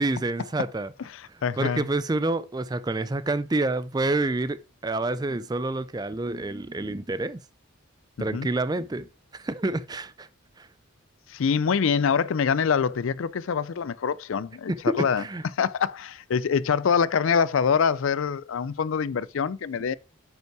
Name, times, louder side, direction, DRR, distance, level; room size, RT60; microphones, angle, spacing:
voice 1, 0.0-0.9 1.6-7.4 8.2-10.3 10.6-10.7 14.7-15.4, right 2 dB, 20° right, 0.4 m, -28 dB
voice 2, 1.0-1.9 8.2-8.5 11.3-15.2 15.5-19.9, left 6 dB, 70° left, 0.4 m, -25 dB
9.1 x 5.5 x 4.7 m
head